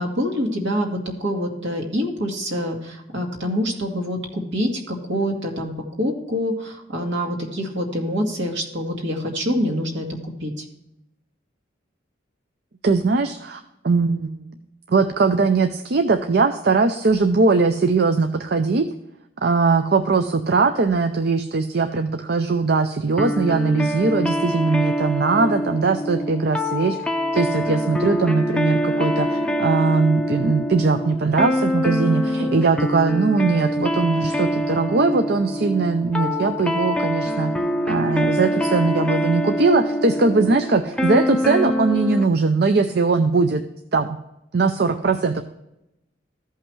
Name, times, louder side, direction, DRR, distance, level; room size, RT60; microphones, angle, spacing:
voice 1, 0.0-5.7 6.0-10.1 10.4-10.6 32.4-32.5, equal, 70° right, 1 dB, 2.2 m, -25 dB
voice 2, 12.8-14.4 14.9-18.9 19.4-27.0 27.3-37.5 37.9-43.6 43.9-44.2 44.5-45.4, right 4 dB, 55° right, 8 dB, 0.5 m, -20 dB
sound 1, 23.2-42.3, equal, 5° left, 0.5 m, -25 dB
14.5 x 5.6 x 3.1 m, 0.87 s
head